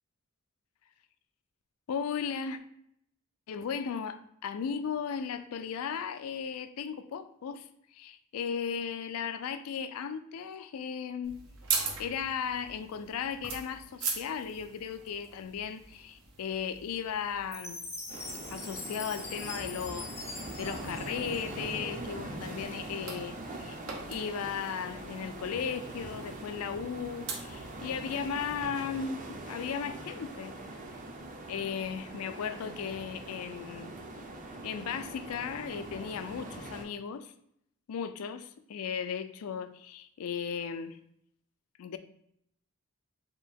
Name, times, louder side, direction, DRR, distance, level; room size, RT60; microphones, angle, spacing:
voice 1, 1.9-2.6 3.5-11.4 11.7-17.8 18.5-23.8 24.1-30.5 31.5-33.9 34.6-37.3 37.9-41.0 41.8-42.0, left 7 dB, 90° left, 0.4 m, -36 dB
sound 1, 11.2-28.6, right 5 dB, 80° right, 0.9 m, -42 dB
Chime, 17.5-21.9, left 2 dB, 10° left, 0.5 m, -43 dB
sound 2, 18.1-36.8, right 1 dB, 35° right, 0.6 m, -43 dB
4.5 x 2.7 x 3.5 m
head